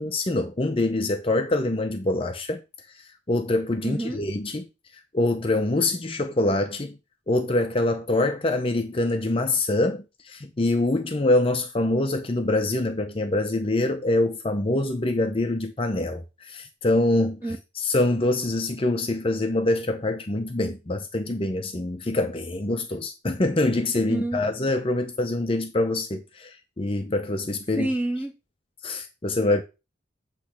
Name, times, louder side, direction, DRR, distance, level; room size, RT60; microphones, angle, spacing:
voice 1, 0.0-2.6 3.3-4.6 5.1-6.9 7.3-17.4 17.8-27.9 28.8-29.6, left 2 dB, 30° left, 0.6 m, -25 dB
voice 2, 3.8-4.2 17.4-17.6 24.1-24.6 27.7-28.3, right 1 dB, 10° right, 1.2 m, -28 dB
8.4 x 3.2 x 5.8 m
head